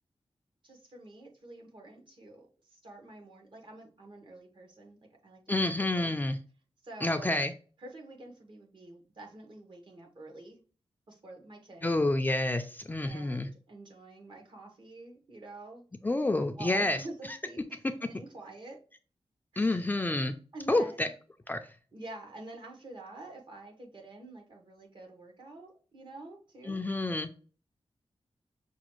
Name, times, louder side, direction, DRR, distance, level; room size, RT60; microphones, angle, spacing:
voice 1, 0.6-5.4 5.8-6.1 6.8-7.4 7.8-10.6 11.1-11.9 13.0-15.8 16.6-18.8 19.5-19.9 20.5-21.1 21.9-26.9, right 2 dB, 55° right, 2 dB, 1.2 m, -48 dB
voice 2, 5.5-6.4 7.0-7.5 11.8-13.5 16.0-17.0 19.6-20.3 20.7-21.1 21.5-21.6 26.7-27.3, left 2 dB, 20° left, 7 dB, 0.3 m, -28 dB
5.9 x 2.3 x 3.0 m, 0.39 s
wide cardioid pair, 150°, 10 cm